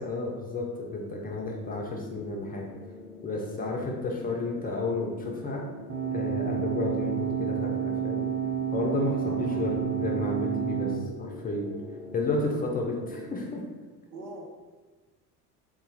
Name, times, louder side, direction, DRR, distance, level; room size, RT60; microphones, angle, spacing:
voice 1, 0.0-2.7 3.2-5.6 6.1-7.8 8.0-8.2 8.7-11.7 12.1-13.6, left 2 dB, 20° left, -1 dB, 0.5 m, -31 dB
sound 1, 0.9-13.4, left 2 dB, 85° left, 0.6 m, -44 dB
sound 2, 5.9-11.0, right 8 dB, 20° right, 0.7 m, -30 dB
voice 2, 9.2-9.7 14.1-14.4, right 1 dB, 70° right, -1 dB, 1.0 m, -42 dB
4.0 x 2.4 x 3.8 m, 1.3 s
figure-of-eight pair, 60°, 47 cm